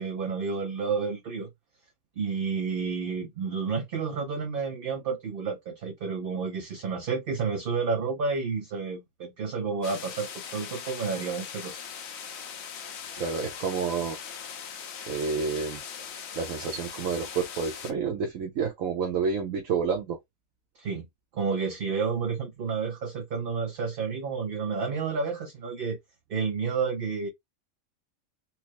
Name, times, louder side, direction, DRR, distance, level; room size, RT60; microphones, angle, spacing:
voice 1, 0.0-1.5 2.2-11.8 20.8-21.1 21.3-26.0 26.3-27.3, right 5 dB, 55° right, 0.7 m, -30 dB
sound 1, 9.8-17.9, left 7 dB, 60° left, 0.8 m, -40 dB
voice 2, 13.1-14.2 15.1-16.1 16.3-20.2, right 5 dB, 70° right, 1.2 m, -29 dB
4.3 x 2.0 x 2.9 m
omnidirectional pair, 1.5 m